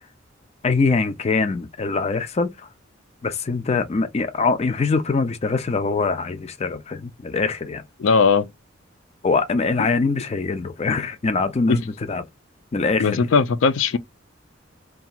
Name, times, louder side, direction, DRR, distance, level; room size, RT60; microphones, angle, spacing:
voice 1, 0.6-2.5 3.2-7.8 9.2-11.8 12.1-12.2 12.7-13.2, left 4 dB, 35° left, 0.4 m, -23 dB
voice 2, 8.0-8.5 11.7-11.8 13.0-14.0, left 5 dB, 90° left, 0.4 m, -18 dB
2.8 x 2.4 x 2.3 m
head